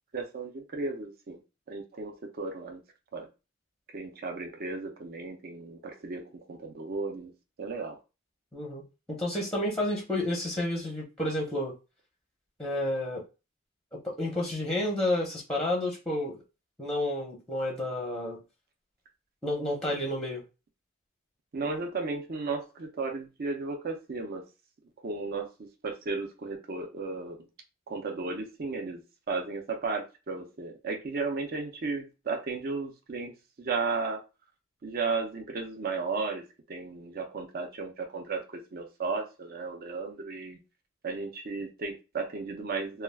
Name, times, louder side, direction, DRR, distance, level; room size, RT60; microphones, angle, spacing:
voice 1, 0.1-1.4 1.7-2.8 3.1-3.3 3.9-8.0 21.5-24.4 25.0-27.4 27.9-29.0 29.3-33.3 33.6-34.2 34.8-36.4 36.7-40.6 41.0-43.0, right 4 dB, 50° right, 3 dB, 0.5 m, -34 dB
voice 2, 8.5-8.8 9.1-11.7 12.6-13.2 13.9-16.4 16.8-18.4 19.4-20.4, left 1 dB, 5° left, -1 dB, 0.6 m, -30 dB
2.3 x 2.2 x 3.3 m, 0.29 s
head